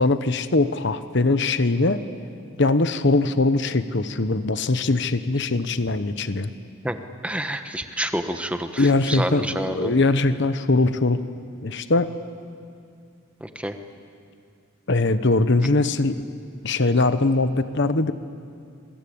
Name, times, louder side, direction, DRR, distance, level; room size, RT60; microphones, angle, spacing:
voice 1, 0.0-2.0 2.6-6.5 8.8-11.2 11.6-12.1 14.9-16.3 16.6-18.1, left 2 dB, 55° left, 11 dB, 0.9 m, -21 dB
voice 2, 7.2-9.9 13.4-13.8, right 1 dB, 5° right, 7 dB, 1.1 m, -28 dB
26.5 x 22.5 x 8.8 m, 2.3 s
head